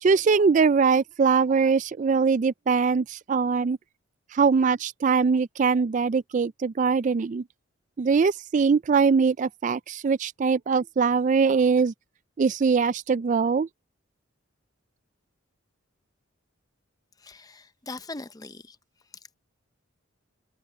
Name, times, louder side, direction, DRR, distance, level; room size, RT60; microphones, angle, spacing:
voice 1, 0.0-3.8 4.3-7.4 8.0-11.9 12.4-13.7, right 5 dB, 40° right, 0.3 m, -22 dB
voice 2, 17.2-18.8 19.1-19.4, left 3 dB, 20° left, 0.6 m, -41 dB
head